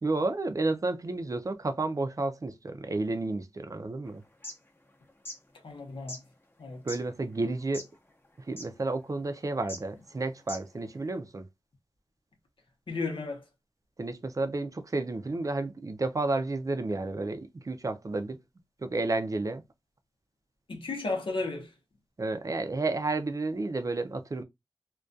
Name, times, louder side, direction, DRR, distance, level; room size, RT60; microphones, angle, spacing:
voice 1, 0.0-4.2 6.8-7.9 8.5-11.5 14.0-18.4 18.8-19.6 22.2-24.4, right 2 dB, 40° right, 0.4 m, -31 dB
sound 1, 4.2-4.6 5.1-5.4 6.1-6.2 6.9-7.0 7.6-8.0 8.2-8.3 8.6-8.7 9.6-9.8 10.4-10.8, left 1 dB, 25° left, 0.6 m, -40 dB
voice 2, 5.6-6.2 6.6-6.8 12.9-13.4 20.7-21.7, left 3 dB, 90° left, 0.7 m, -33 dB
2.3 x 2.2 x 2.5 m
wide cardioid pair, 60°, 9 cm